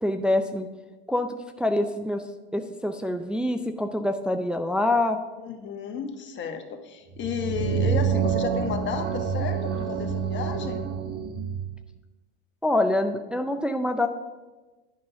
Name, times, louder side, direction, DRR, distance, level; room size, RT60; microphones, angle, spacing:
voice 1, 0.0-0.7 1.1-2.2 2.5-5.2 12.6-14.1, left 1 dB, 5° right, 6 dB, 0.4 m, -25 dB
voice 2, 5.4-10.9, left 6 dB, 35° left, 6 dB, 1.3 m, -33 dB
sound 1, 7.1-11.8, right 7 dB, 30° right, 1.2 m, -27 dB
10.5 x 5.4 x 5.8 m, 1.2 s
hypercardioid pair, 105°, 32 cm